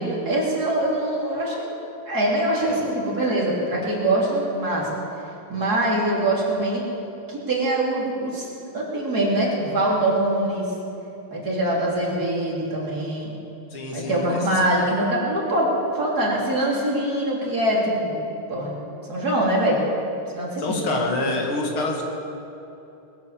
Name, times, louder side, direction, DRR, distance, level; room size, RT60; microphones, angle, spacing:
voice 1, 0.0-1.7 2.1-4.9 5.5-6.9 7.3-8.5 8.7-10.7 11.3-13.3 13.9-18.2 18.5-18.7 19.1-19.8 20.4-20.9, right 1 dB, 45° right, -4 dB, 3.5 m, -23 dB
voice 2, 13.7-14.4 20.6-22.0, left 2 dB, 85° left, 1 dB, 2.8 m, -27 dB
20.5 x 8.9 x 7.2 m, 2.9 s
omnidirectional pair, 2.3 m